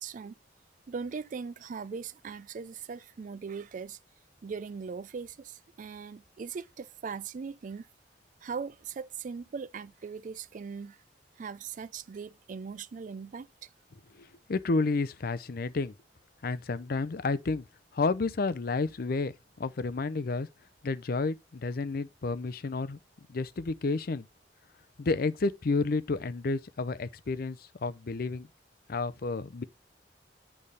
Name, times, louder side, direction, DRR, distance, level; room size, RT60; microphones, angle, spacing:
voice 1, 0.0-0.4 0.9-4.0 4.4-7.9 8.4-11.0 11.4-13.7, right 5 dB, 45° right, 0.4 m, -40 dB
voice 2, 14.1-15.9 16.4-17.6 17.9-19.3 19.6-20.5 20.8-23.0 23.3-24.3 25.0-28.5 28.9-29.6, left 3 dB, 55° left, 0.5 m, -31 dB
8.7 x 3.4 x 5.5 m
head